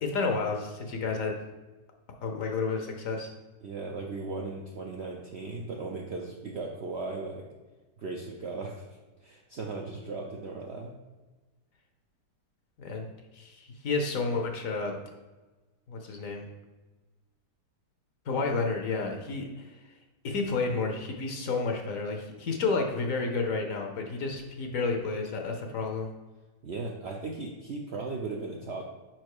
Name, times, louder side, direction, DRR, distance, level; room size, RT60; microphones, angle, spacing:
voice 1, 0.0-1.3 2.2-3.3 12.8-13.1 13.3-14.9 15.9-16.4 18.3-19.8 20.2-26.1, left 4 dB, 60° left, 3 dB, 1.0 m, -31 dB
voice 2, 3.6-7.4 8.0-8.8 9.2-10.9 26.6-28.9, right 3 dB, 65° right, 0 dB, 0.6 m, -37 dB
5.1 x 4.5 x 4.7 m, 1.2 s
omnidirectional pair, 1.8 m